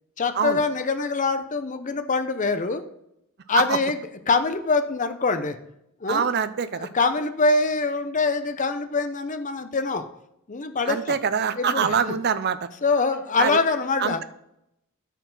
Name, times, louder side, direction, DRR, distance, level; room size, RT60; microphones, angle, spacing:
voice 1, 0.2-2.8 3.5-4.0 4.3-5.6 6.0-6.3 6.7-10.1 10.5-11.2 11.6-12.0 12.8-14.2, left 3 dB, 35° left, 9 dB, 0.7 m, -24 dB
voice 2, 6.1-6.9 10.9-12.6 13.4-13.6 14.0-14.2, right 6 dB, 50° right, 12 dB, 0.5 m, -24 dB
13.0 x 4.6 x 3.9 m, 0.80 s
head